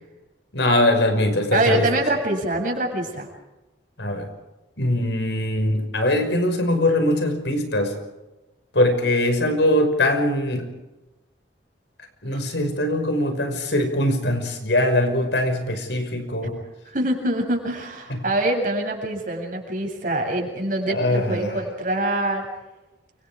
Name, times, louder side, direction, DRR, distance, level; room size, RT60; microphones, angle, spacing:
voice 1, 0.5-1.9 4.0-4.3 4.8-7.9 8.7-10.7 12.2-16.6 18.1-18.2 20.9-21.6, left 1 dB, 70° left, 6 dB, 5.7 m, -22 dB
voice 2, 1.5-3.3 16.4-16.5 16.9-22.5, right 1 dB, 45° right, 2 dB, 7.9 m, -24 dB
29.5 x 25.5 x 5.0 m, 1.0 s
head